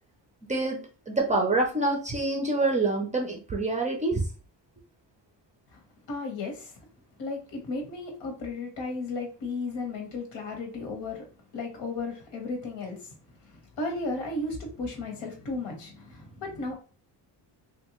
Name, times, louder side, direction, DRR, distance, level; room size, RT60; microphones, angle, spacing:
voice 1, 0.5-0.8 1.1-4.2, right 2 dB, 20° right, 1 dB, 0.4 m, -26 dB
voice 2, 6.1-6.7 7.2-11.3 11.5-13.1 13.8-16.7, left 3 dB, 85° left, 2 dB, 1.3 m, -34 dB
3.2 x 2.6 x 2.9 m, 0.35 s
cardioid pair, 180°, 43 cm